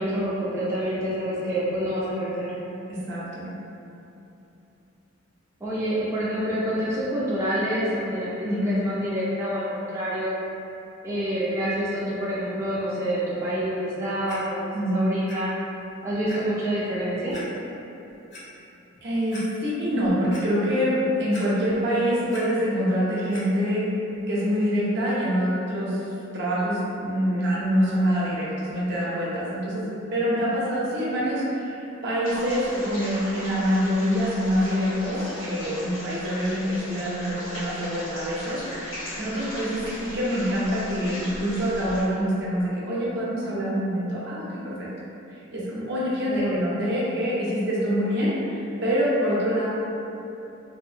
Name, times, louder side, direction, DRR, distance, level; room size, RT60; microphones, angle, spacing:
voice 1, 0.0-2.5 5.6-10.3 11.0-15.5 16.0-17.4 46.3-46.7, equal, 15° right, -10 dB, 0.4 m, -27 dB
voice 2, 2.9-3.5 8.4-8.8 14.7-15.1 19.0-23.8 24.3-26.0 26.3-44.9 45.5-49.7, equal, 55° right, -7 dB, 0.6 m, -25 dB
Clock, 14.3-14.4 15.3-15.4 15.8-15.9 16.3-16.4 17.3-17.4 18.1-18.4 18.9-19.0 19.3-19.4 19.9-20.4 21.3-21.8 22.1-22.4 23.3-23.4 24.1-24.2, left 1 dB, 60° left, 0.7 m, -41 dB
sound 1, 32.2-42.0, equal, 85° left, 1.1 m, -37 dB
2.6 x 2.4 x 2.7 m, 2.9 s
head